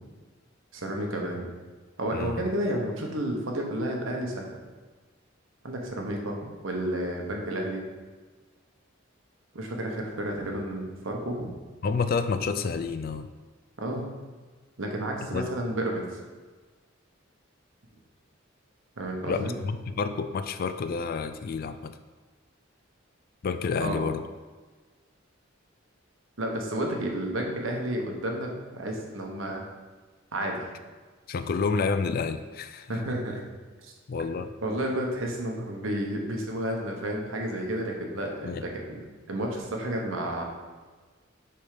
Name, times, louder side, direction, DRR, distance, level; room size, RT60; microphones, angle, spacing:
voice 1, 0.7-1.5 2.0-4.5 5.6-7.9 9.5-11.5 13.8-14.0 14.8-16.2 19.0-19.5 23.8-24.0 26.4-29.6 30.3-30.7 32.9-33.4 33.8-33.9 34.6-39.0 39.3-40.4, right 1 dB, 80° right, 1 dB, 1.1 m, -31 dB
voice 2, 2.1-2.4 11.8-13.3 15.3-15.5 19.3-22.0 23.4-24.2 31.3-32.9 34.1-34.5 38.4-38.6, left 5 dB, 45° left, 10 dB, 0.3 m, -29 dB
6.8 x 3.5 x 5.0 m, 1.3 s
head